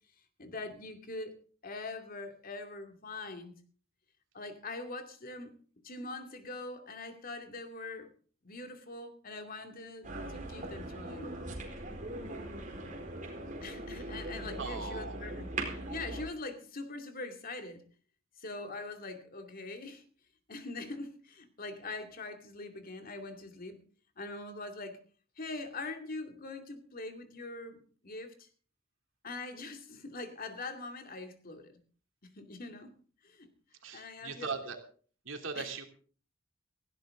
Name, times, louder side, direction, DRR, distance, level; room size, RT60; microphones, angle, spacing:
voice 1, 0.4-1.3 1.6-3.6 4.3-5.5 5.8-8.1 8.4-11.3 13.6-15.5 15.9-17.9 18.4-20.0 20.5-23.8 24.2-25.0 25.4-28.5 29.2-31.8 32.2-32.9 33.2-33.5 33.9-34.6 35.5-35.7, left 3 dB, 45° left, 2.5 m, -43 dB
sound 1, 10.0-16.3, right 2 dB, 40° right, 4.4 m, -40 dB
voice 2, 14.6-15.2 33.8-34.8 35.2-35.8, right 4 dB, 80° right, 3.0 m, -39 dB
18.0 x 15.5 x 3.8 m
head